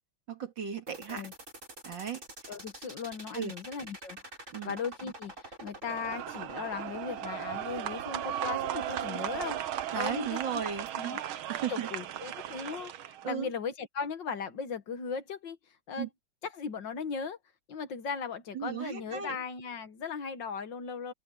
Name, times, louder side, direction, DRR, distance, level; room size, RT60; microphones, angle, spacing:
voice 1, 0.3-1.3 1.8-2.5 3.3-3.5 4.5-4.8 9.9-11.2 11.5-11.9 13.2-13.5 16.0-16.1 18.5-19.4, right 7 dB, 65° right, 2.8 m, -36 dB
sound 1, 0.9-10.9, right 1 dB, 35° right, 8.5 m, -47 dB
voice 2, 2.5-4.2 4.6-10.6 10.9-11.2 11.7-16.1 16.5-17.4 17.7-21.1, left 5 dB, 60° left, 2.1 m, -38 dB
sound 2, 5.9-13.3, right 11 dB, 80° right, 1.8 m, -36 dB
open air
omnidirectional pair, 2.2 m